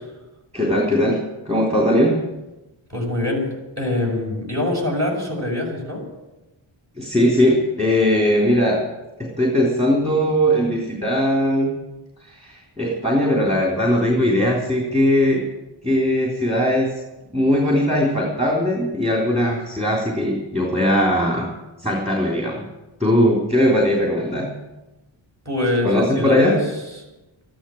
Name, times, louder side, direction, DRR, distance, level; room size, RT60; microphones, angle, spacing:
voice 1, 0.5-2.1 7.0-8.8 9.2-11.7 12.2-15.5 15.8-16.9 17.3-21.5 21.8-22.7 23.0-24.5 25.8-26.5, equal, 15° right, -1 dB, 3.5 m, -19 dB
voice 2, 2.9-3.5 3.8-6.0 25.4-26.6 26.9-27.1, left 1 dB, 35° right, -1 dB, 6.4 m, -24 dB
14.0 x 11.5 x 8.6 m, 1.0 s
wide cardioid pair, 100°, 48 cm